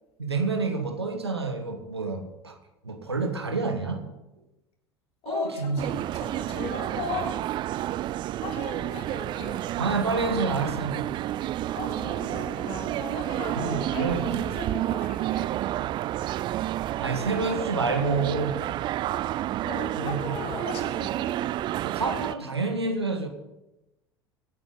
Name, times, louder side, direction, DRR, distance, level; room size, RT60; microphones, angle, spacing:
voice 1, 0.2-2.6 2.8-4.1 5.2-5.8 9.8-11.1 13.6-14.4 17.0-18.7 20.0-20.4 21.8-23.3, right 4 dB, 85° right, 7 dB, 1.3 m, -28 dB
voice 2, 5.2-7.5 8.4-9.7 11.7-15.6 19.6-21.4, left 5 dB, 45° left, 1 dB, 3.7 m, -37 dB
sound 1, 5.8-22.3, right 13 dB, 35° right, 0.4 m, -30 dB
23.5 x 9.0 x 3.8 m, 0.96 s
figure-of-eight pair, 70°, 13 cm